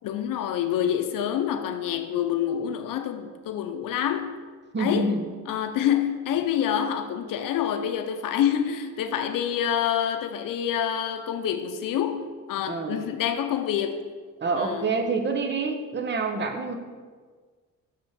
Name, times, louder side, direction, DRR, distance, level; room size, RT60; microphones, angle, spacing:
voice 1, 0.0-4.4 4.8-5.2 5.5-14.0 14.5-15.0, left 9 dB, 75° left, 8 dB, 0.7 m, -27 dB
voice 2, 4.7-5.2 12.7-13.0 14.4-16.8, right 3 dB, 35° right, 5 dB, 1.0 m, -27 dB
6.1 x 5.7 x 6.5 m, 1.5 s
cardioid pair, 110°, 33 cm